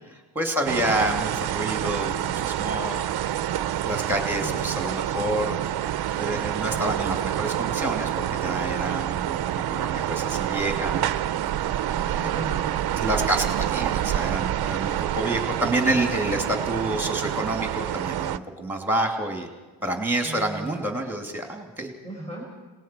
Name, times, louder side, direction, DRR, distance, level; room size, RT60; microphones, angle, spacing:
voice 1, 0.1-3.1 3.8-5.6 6.2-11.1 13.0-19.5 19.8-21.9, right 1 dB, 5° right, 2 dB, 2.8 m, -28 dB
sound 1, 0.7-18.4, right 11 dB, 50° right, 0.6 m, -27 dB
voice 2, 4.4-4.7 11.9-12.7 20.2-21.0 22.0-22.4, right 1 dB, 15° left, -2 dB, 5.1 m, -38 dB
29.5 x 19.0 x 4.6 m, 1.3 s
cardioid pair, 155°, 50 cm